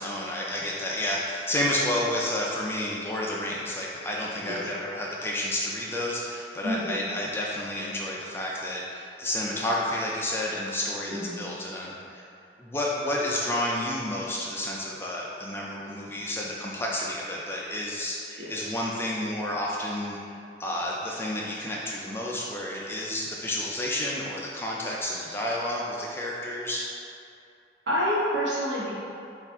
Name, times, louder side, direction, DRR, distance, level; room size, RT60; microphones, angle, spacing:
voice 1, 0.0-12.3 12.6-26.9, left 1 dB, 10° left, -4 dB, 0.3 m, -30 dB
voice 2, 6.6-7.0 11.1-11.3 18.4-18.7 27.9-28.9, equal, 70° right, -7 dB, 1.2 m, -28 dB
5.5 x 2.5 x 3.5 m, 2.5 s
head